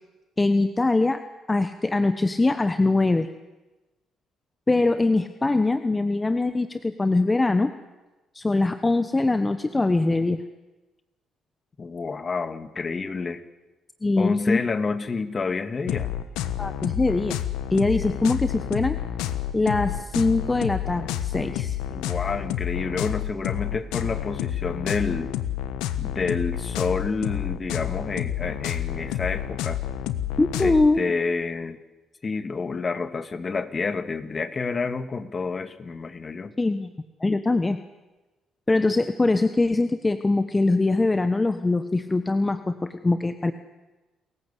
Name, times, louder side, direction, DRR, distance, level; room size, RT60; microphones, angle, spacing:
voice 1, 0.4-1.2 1.5-3.3 4.7-7.7 8.3-10.4 14.0-14.6 16.6-17.4 17.7-19.0 19.5-21.8 30.4-31.0 36.6-36.9 37.2-37.8 38.7-43.5, left 2 dB, 20° left, 10 dB, 1.2 m, -22 dB
voice 2, 11.8-13.4 14.2-16.1 21.9-25.3 26.0-29.8 30.6-31.8 32.2-36.5, left 4 dB, 40° left, 11 dB, 2.0 m, -29 dB
sound 1, 15.9-30.9, left 11 dB, 85° left, 1.2 m, -29 dB
28.5 x 15.0 x 8.4 m, 1.1 s
supercardioid pair, 60°, 0 cm